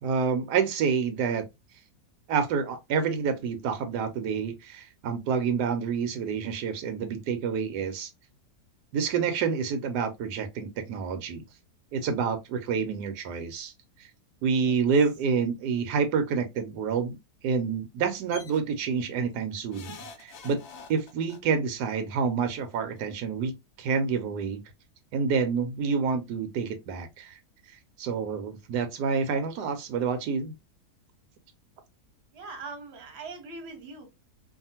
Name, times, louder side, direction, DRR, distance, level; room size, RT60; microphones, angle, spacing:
voice 1, 0.0-1.5 2.3-8.1 8.9-11.4 11.9-13.7 14.4-17.2 17.4-20.6 20.9-23.5 23.8-24.6 25.1-27.4 28.0-30.5, right 6 dB, 85° right, 1.2 m, -28 dB
sound 1, 18.3-18.6 19.7-21.4 22.6-22.7 23.0-23.1, left 5 dB, 80° left, 0.6 m, -45 dB
voice 2, 32.3-34.1, right 3 dB, 50° right, 1.0 m, -41 dB
2.7 x 2.4 x 2.7 m
omnidirectional pair, 1.7 m